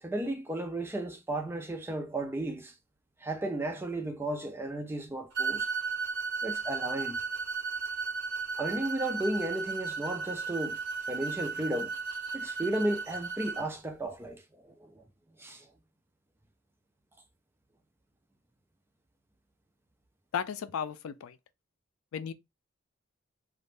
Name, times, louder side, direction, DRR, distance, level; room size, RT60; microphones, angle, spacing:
voice 1, 0.0-2.7 3.2-5.7 6.4-7.2 8.6-10.8 11.1-11.9 12.3-15.0 15.4-15.7, right 1 dB, 10° right, 0.3 m, -34 dB
sound 1, 5.3-13.7, right 5 dB, 55° right, 0.8 m, -35 dB
voice 2, 20.3-21.4 22.1-22.3, left 7 dB, 85° left, 0.3 m, -34 dB
2.5 x 2.1 x 3.2 m
head